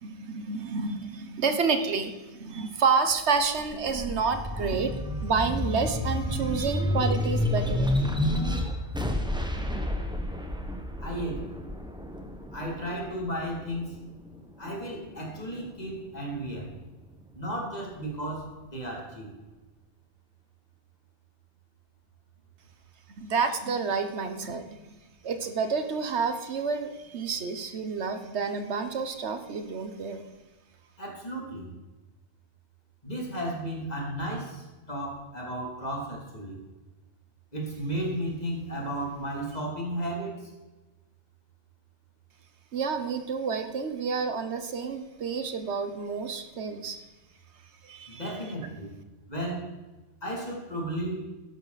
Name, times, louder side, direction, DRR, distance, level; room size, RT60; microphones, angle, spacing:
voice 1, 0.0-7.9 23.2-24.8 25.2-30.2 42.7-47.0 47.8-48.4, right 5 dB, 75° right, 9 dB, 1.3 m, -29 dB
sound 1, 3.4-14.2 14.7-15.8, left 1 dB, 5° right, 1.1 m, -30 dB
voice 2, 11.0-11.6 12.5-14.0 14.6-16.7 17.3-19.3 31.0-31.7 33.0-36.6 37.5-40.5 48.1-48.9 49.3-49.7 50.2-51.3, right 1 dB, 35° left, -2 dB, 3.0 m, -34 dB
12.5 x 10.5 x 4.1 m, 1.1 s
omnidirectional pair, 1.2 m